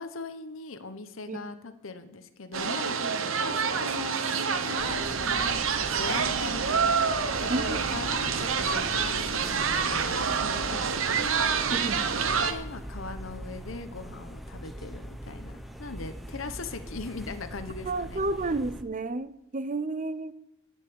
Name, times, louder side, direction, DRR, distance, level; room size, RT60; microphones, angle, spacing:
voice 1, 0.0-11.5 12.5-18.2, left 3 dB, 70° left, 10 dB, 1.0 m, -40 dB
sound 1, 2.5-12.5, right 6 dB, 70° right, 0.9 m, -27 dB
sound 2, 4.8-18.8, equal, ahead, 0.9 m, -41 dB
voice 2, 7.5-8.0 8.4-8.5 11.7-12.1 17.8-20.3, right 2 dB, 40° right, 14 dB, 0.7 m, -31 dB
14.5 x 5.6 x 8.5 m, 0.86 s
head